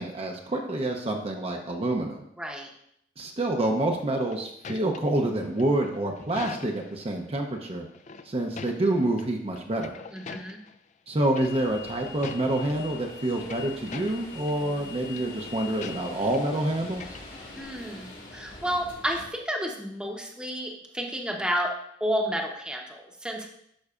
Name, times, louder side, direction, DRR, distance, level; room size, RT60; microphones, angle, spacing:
voice 1, 0.0-2.2 3.2-7.9 8.2-9.9 11.1-17.2, right 1 dB, 35° right, 2 dB, 0.6 m, -27 dB
voice 2, 2.4-2.7 10.1-10.6 17.5-21.7 22.0-23.5, equal, 5° right, 1 dB, 0.8 m, -31 dB
sound 1, 4.0-7.0 7.9-9.3 9.6-10.8 11.3-11.8 12.1-12.8 13.2-14.6 14.9-15.2 15.8-16.6 16.8-17.6, left 5 dB, 45° left, 0.4 m, -43 dB
sound 2, 11.4-19.3, left 4 dB, 85° left, 2.2 m, -43 dB
11.5 x 5.4 x 2.4 m, 0.73 s
head